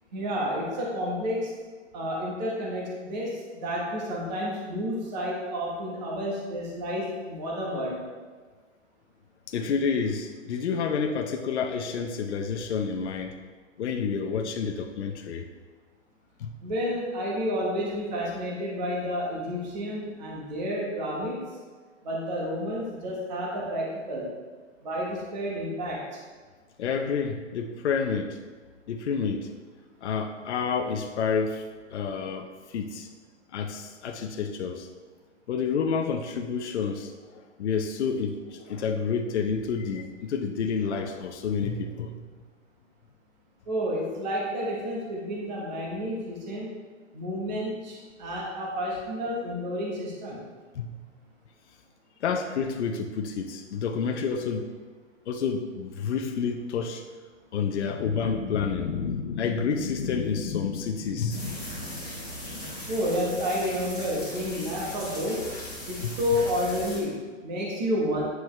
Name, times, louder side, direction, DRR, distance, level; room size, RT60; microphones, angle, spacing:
voice 1, 0.1-1.5 1.9-8.0 16.6-21.4 22.0-24.3 24.8-26.2 43.7-46.8 47.1-50.4 62.9-65.5 65.9-68.2, equal, 35° right, -4 dB, 1.4 m, -30 dB
voice 2, 9.5-13.4 13.8-15.5 16.4-16.5 26.8-28.4 28.9-29.5 30.0-31.6 31.9-33.1 33.5-34.9 35.5-42.1 50.7-50.9 52.2-54.7 55.3-57.0 57.5-61.7 66.0-66.1, left 6 dB, 60° left, 3 dB, 0.7 m, -29 dB
sound 1, 61.3-67.0, left 1 dB, 5° right, 0.5 m, -38 dB
9.4 x 4.7 x 3.2 m, 1.5 s
hypercardioid pair, 170°, 38 cm